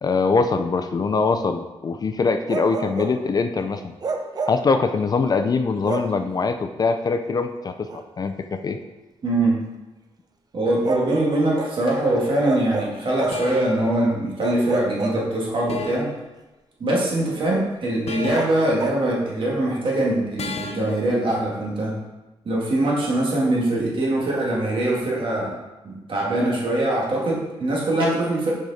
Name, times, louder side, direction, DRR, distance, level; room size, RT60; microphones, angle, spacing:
voice 1, 0.0-3.9 4.5-8.8, left 4 dB, 40° left, 7 dB, 0.4 m, -23 dB
Bark, 2.5-3.2 4.0-4.7 5.8-6.2 7.9-8.1 10.8-11.8 12.4-13.5 14.4-15.7 18.3-19.1, right 4 dB, 40° right, 0.6 m, -29 dB
voice 2, 9.2-9.6 10.5-16.1 16.8-22.0 22.5-25.6 25.8-28.5, right 1 dB, 55° right, -4 dB, 2.0 m, -22 dB
sound 1, 12.1-12.3 13.3-13.8 15.7-16.2 18.1-18.7 20.4-21.0, left 5 dB, 80° left, 0.7 m, -33 dB
6.7 x 4.9 x 4.1 m, 1.1 s
wide cardioid pair, 150°, 11 cm